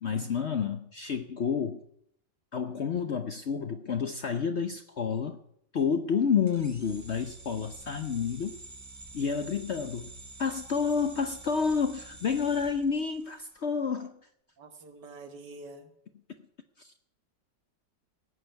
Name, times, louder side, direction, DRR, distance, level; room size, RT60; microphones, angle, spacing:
voice 1, 0.0-1.8 2.5-5.4 5.7-8.6 9.1-10.1 10.4-14.2 16.8-16.9, left 6 dB, 55° left, 9 dB, 0.8 m, -29 dB
sound 1, 6.5-13.6, right 2 dB, 25° right, 0.4 m, -48 dB
voice 2, 14.6-15.9, right 2 dB, 70° right, 7 dB, 2.2 m, -46 dB
17.0 x 6.7 x 9.2 m, 0.71 s
omnidirectional pair, 1.9 m